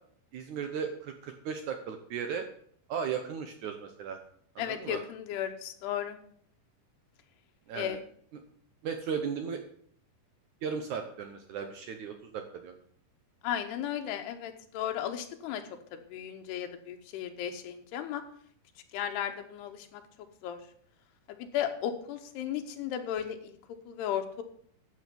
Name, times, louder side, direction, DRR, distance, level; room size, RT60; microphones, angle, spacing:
voice 1, 0.3-2.5 2.9-4.2 4.6-5.0 7.7-8.0 8.8-9.6 10.6-12.7, right 6 dB, 80° right, 6 dB, 1.7 m, -36 dB
voice 2, 4.6-6.2 7.7-8.0 13.4-15.6 15.9-18.2 18.9-20.0 20.4-20.6 21.3-23.6 23.9-24.4, left 10 dB, 80° left, 6 dB, 3.0 m, -35 dB
12.5 x 7.9 x 5.3 m, 0.62 s
omnidirectional pair, 4.7 m